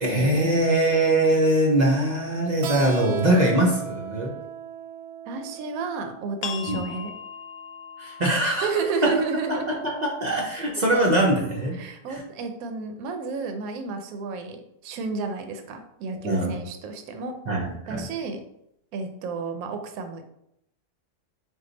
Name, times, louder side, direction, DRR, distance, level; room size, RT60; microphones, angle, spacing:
voice 1, 0.0-4.3 6.7-6.8 8.0-8.7 9.5-11.8 16.2-16.5 17.5-18.0, right 1 dB, 55° right, -1 dB, 0.4 m, -22 dB
Keyboard (musical), 2.6-7.9, right 7 dB, 90° right, 1.2 m, -37 dB
voice 2, 5.3-7.1 8.6-9.8 11.7-17.3 17.9-18.4 18.9-20.2, right 4 dB, 70° right, 6 dB, 1.0 m, -31 dB
sound 1, 6.4-11.8, left 7 dB, 75° left, 1.1 m, -41 dB
4.5 x 2.4 x 3.9 m, 0.79 s
omnidirectional pair, 1.7 m